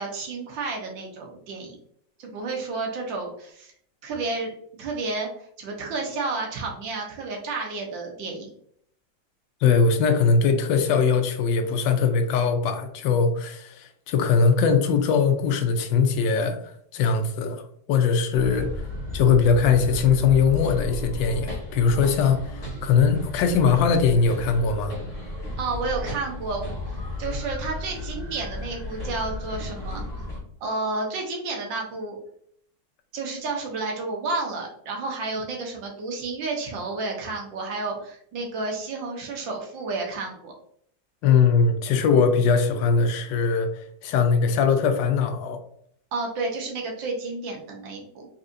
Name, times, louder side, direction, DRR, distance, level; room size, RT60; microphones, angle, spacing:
voice 1, 0.0-1.8 2.2-3.7 4.0-4.5 4.8-8.5 25.6-30.0 30.6-32.2 33.1-40.5 46.1-48.3, right 3 dB, 85° right, 1 dB, 1.7 m, -31 dB
voice 2, 9.6-16.6 16.9-17.6 17.9-18.7 19.1-24.9 41.2-45.6, left 5 dB, 80° left, 6 dB, 1.3 m, -21 dB
sound 1, 18.3-30.4, left 2 dB, 25° left, 1.3 m, -34 dB
4.0 x 3.6 x 2.5 m, 0.65 s
omnidirectional pair, 2.0 m